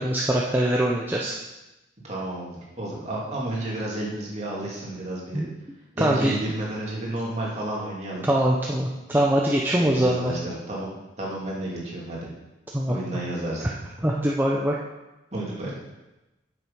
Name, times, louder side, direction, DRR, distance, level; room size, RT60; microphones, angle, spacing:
voice 1, 0.0-1.4 5.3-5.5 6.0-6.3 8.2-10.3 12.7-13.0 14.0-14.7, right 1 dB, 10° right, -3 dB, 0.7 m, -23 dB
voice 2, 2.0-5.4 5.9-8.3 9.7-12.3 12.9-13.8 15.3-15.8, right 1 dB, 35° right, -4 dB, 2.5 m, -31 dB
7.9 x 7.2 x 5.5 m, 1.0 s
head